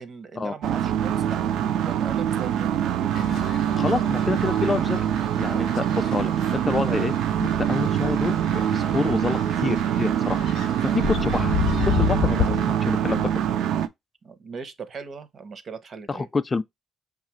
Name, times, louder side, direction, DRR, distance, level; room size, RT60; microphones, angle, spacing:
voice 1, 0.0-3.3 5.5-5.7 12.4-12.6 14.2-16.3, right 5 dB, 50° right, 0.8 m, -39 dB
sound 1, 0.6-13.9, right 10 dB, 85° right, 0.4 m, -24 dB
sound 2, 3.1-12.6, left 10 dB, 70° left, 0.6 m, -32 dB
voice 2, 3.8-5.0 5.4-10.5 10.8-13.3 16.1-16.6, left 4 dB, 30° left, 0.3 m, -28 dB
5.4 x 2.4 x 3.0 m
cardioid pair, 90°, 0 cm